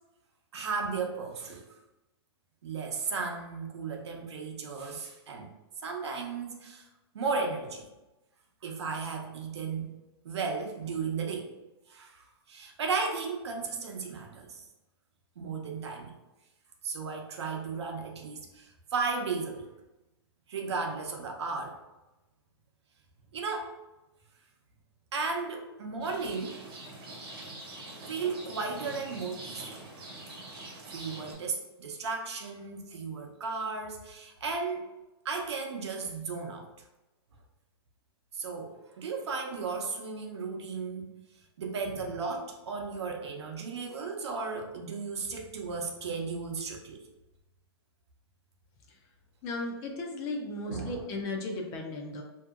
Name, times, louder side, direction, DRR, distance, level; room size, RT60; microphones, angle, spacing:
voice 1, 0.5-1.8 2.6-5.5 5.8-6.8 7.1-7.9 8.6-10.0 10.2-11.5 11.9-14.6 15.4-16.1 16.8-19.7 20.5-21.8 23.3-23.8 25.1-26.6 28.1-29.8 30.9-34.9 35.2-36.7 38.3-41.2 41.6-47.0 50.7-51.0, right 4 dB, 85° right, 2 dB, 0.7 m, -35 dB
Rain, 26.0-31.3, right 2 dB, 55° right, 1.1 m, -44 dB
voice 2, 49.4-52.2, left 2 dB, 25° left, 2 dB, 0.3 m, -35 dB
2.7 x 2.7 x 2.3 m, 1.0 s
hypercardioid pair, 155°, 14 cm